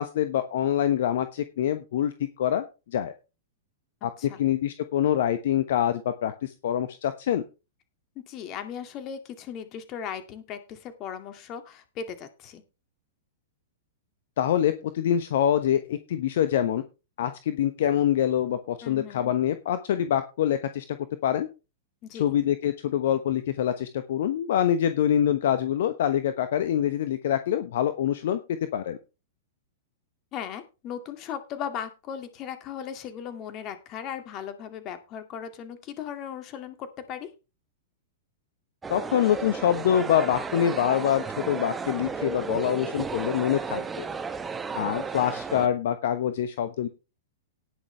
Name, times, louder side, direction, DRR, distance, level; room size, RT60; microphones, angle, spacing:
voice 1, 0.0-3.1 4.0-4.1 4.4-7.4 14.4-16.8 17.2-21.0 21.2-21.5 22.1-28.4 28.7-29.0 38.9-44.0 44.7-46.9, left 10 dB, 55° left, 11 dB, 1.0 m, -25 dB
voice 2, 8.3-12.6 18.8-19.3 22.0-22.4 30.3-37.3, left 8 dB, 35° left, 8 dB, 2.3 m, -37 dB
sound 1, 38.8-45.7, right 5 dB, 15° right, 1.5 m, -33 dB
18.5 x 6.5 x 3.4 m, 0.29 s
figure-of-eight pair, 100°, 0 cm